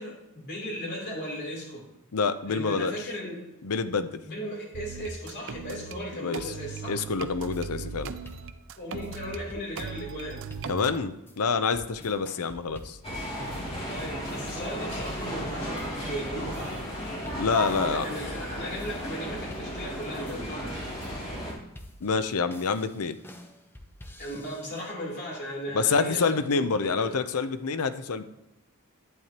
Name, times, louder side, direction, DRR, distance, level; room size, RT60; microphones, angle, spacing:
voice 1, 0.0-1.9 2.5-3.5 4.2-7.0 8.8-10.4 13.9-16.8 17.7-20.8 24.2-27.1, equal, 50° left, -2 dB, 3.4 m, -36 dB
voice 2, 2.1-2.9 3.6-4.2 6.1-6.5 6.9-8.1 10.7-13.0 17.3-18.1 22.0-23.2 25.7-28.2, left 5 dB, 75° left, 11 dB, 0.6 m, -27 dB
sound 1, 4.7-6.0 6.3-9.4 9.8-11.0, right 5 dB, 60° right, 0.5 m, -38 dB
sound 2, 7.5-24.9, left 1 dB, 10° left, 0.8 m, -49 dB
sound 3, 13.0-21.5, equal, 25° left, 2.7 m, -34 dB
11.0 x 8.9 x 2.9 m, 0.92 s
head